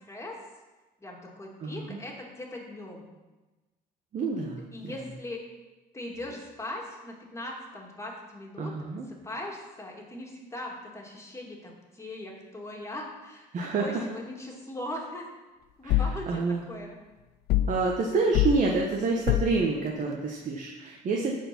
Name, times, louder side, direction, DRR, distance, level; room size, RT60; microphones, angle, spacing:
voice 1, 0.1-0.4 1.0-3.1 4.7-5.4 5.9-8.7 9.2-15.3 15.8-16.4 16.7-16.9, left 1 dB, 15° left, -1 dB, 2.5 m, -40 dB
voice 2, 1.6-2.0 4.1-5.1 8.6-9.1 13.5-14.0 15.8-16.6 17.7-21.4, right 3 dB, 50° right, -1 dB, 1.4 m, -28 dB
sound 1, 15.9-16.2 17.5-17.8 18.3-18.6 19.3-19.6, left 12 dB, 70° left, 0.5 m, -24 dB
14.0 x 4.8 x 6.2 m, 1.1 s
cardioid pair, 110°, 17 cm